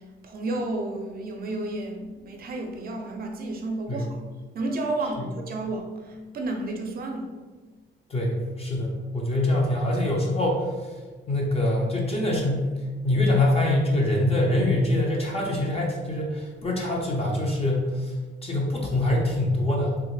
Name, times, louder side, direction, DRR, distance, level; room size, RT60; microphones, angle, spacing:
voice 1, 0.2-4.2 4.5-7.3, right 2 dB, 50° right, 3 dB, 0.6 m, -31 dB
voice 2, 8.1-10.9 11.3-12.7 13.0-18.1 18.4-20.0, left 1 dB, 30° left, -2 dB, 0.7 m, -24 dB
3.4 x 2.0 x 3.1 m, 1.3 s
cardioid pair, 90°, 20 cm